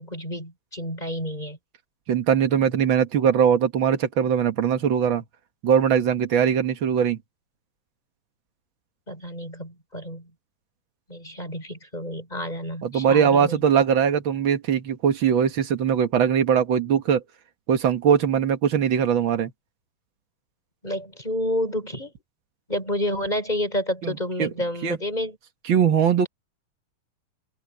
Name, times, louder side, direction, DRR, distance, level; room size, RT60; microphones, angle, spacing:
voice 1, 0.0-1.6 9.1-10.3 11.1-13.6 20.8-22.1 22.7-25.4, left 1 dB, 10° left, 5.5 m, -29 dB
voice 2, 2.1-5.2 5.6-7.2 12.8-17.2 17.7-19.5 24.0-24.1 24.4-24.5 24.8-25.0 25.7-26.3, right 8 dB, 75° right, 1.1 m, -21 dB
open air
omnidirectional pair, 4.5 m